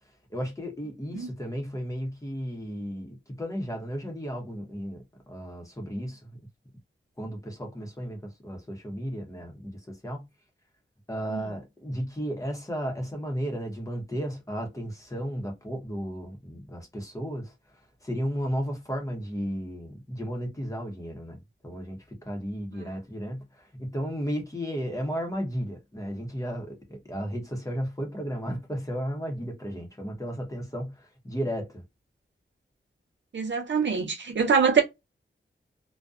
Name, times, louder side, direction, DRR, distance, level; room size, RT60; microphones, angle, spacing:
voice 1, 0.3-6.2 7.2-10.2 11.1-17.5 18.0-31.8, equal, 15° left, 0.8 m, -34 dB
voice 2, 33.3-34.8, right 6 dB, 65° right, 0.6 m, -24 dB
2.4 x 2.1 x 2.3 m
wide cardioid pair, 100°, 20 cm